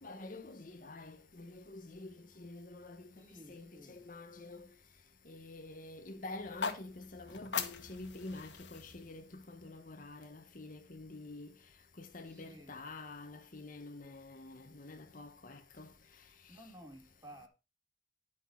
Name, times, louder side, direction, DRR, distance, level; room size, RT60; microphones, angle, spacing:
voice 1, 0.0-3.1 3.5-4.7 5.2-11.5 12.0-15.9, left 2 dB, 50° left, 1.1 m, -48 dB
voice 2, 3.1-4.1 12.2-12.8 16.5-17.5, right 1 dB, 20° right, 3.2 m, -54 dB
sound 1, 6.4-10.5, left 6 dB, 80° left, 1.5 m, -42 dB
11.0 x 6.1 x 4.5 m
head